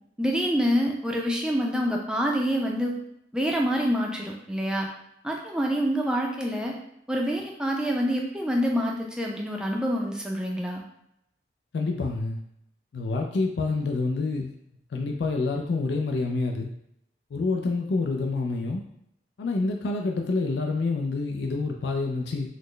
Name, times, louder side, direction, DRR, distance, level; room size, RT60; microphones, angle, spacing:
voice 1, 0.2-3.0 3.3-4.9 5.2-6.7 7.1-10.8, equal, 5° right, -1 dB, 0.4 m, -26 dB
voice 2, 11.7-12.4 12.9-14.5 14.9-16.7 17.3-18.8 19.4-22.5, left 3 dB, 70° left, 2 dB, 0.4 m, -27 dB
4.0 x 2.1 x 3.1 m, 0.76 s
head